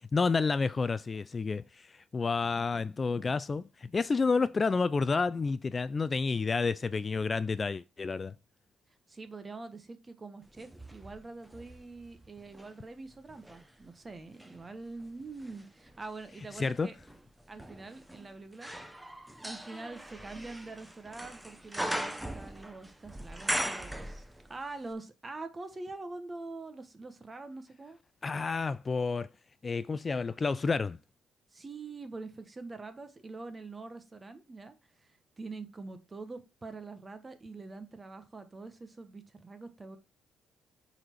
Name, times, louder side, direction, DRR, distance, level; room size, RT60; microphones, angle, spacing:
voice 1, 0.1-8.3 16.6-16.9 28.2-29.3 29.6-31.0, left 4 dB, 30° left, 0.4 m, -30 dB
voice 2, 9.1-17.0 17.5-18.7 19.3-24.2 24.5-28.0 31.5-34.7 35.0-40.0, right 3 dB, 25° right, 1.3 m, -44 dB
sound 1, 10.5-12.7 13.3-24.6 24.9-25.0, right 1 dB, 5° right, 0.9 m, -40 dB
7.7 x 4.3 x 4.6 m
cardioid pair, 90°, 0 cm